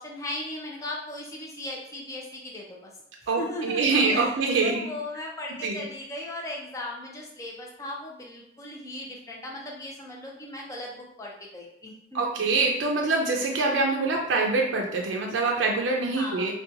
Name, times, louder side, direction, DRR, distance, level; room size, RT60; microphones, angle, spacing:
voice 1, 0.0-2.9 3.4-12.4 16.2-16.5, left 1 dB, 20° left, -2 dB, 0.5 m, -37 dB
voice 2, 3.3-4.9 5.6-5.8 12.1-16.5, right 3 dB, 80° right, 0 dB, 0.4 m, -25 dB
2.7 x 2.2 x 2.5 m, 0.72 s
head